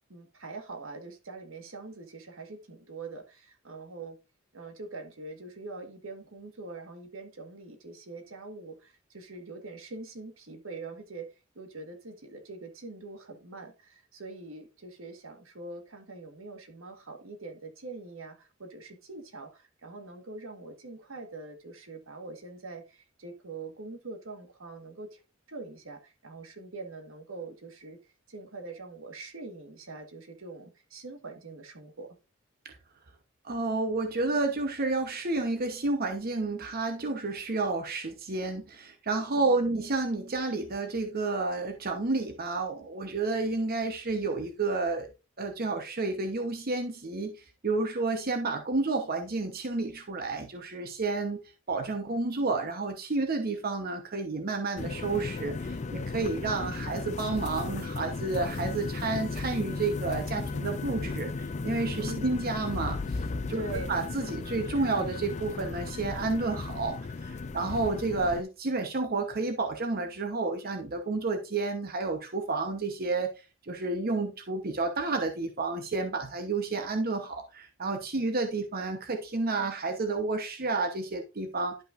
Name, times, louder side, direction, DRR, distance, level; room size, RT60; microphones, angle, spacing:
voice 1, 0.1-4.2 4.5-25.2 25.5-32.1 39.3-39.7 62.0-62.4 63.5-63.9, right 3 dB, 80° right, 1.4 m, -43 dB
voice 2, 33.4-45.1 45.4-51.4 51.7-63.2 63.5-63.6 63.9-73.3 73.6-81.8, right 3 dB, 50° right, 0.9 m, -30 dB
sound 1, 54.8-68.4, left 3 dB, 35° left, 0.4 m, -35 dB
11.0 x 5.5 x 2.5 m
head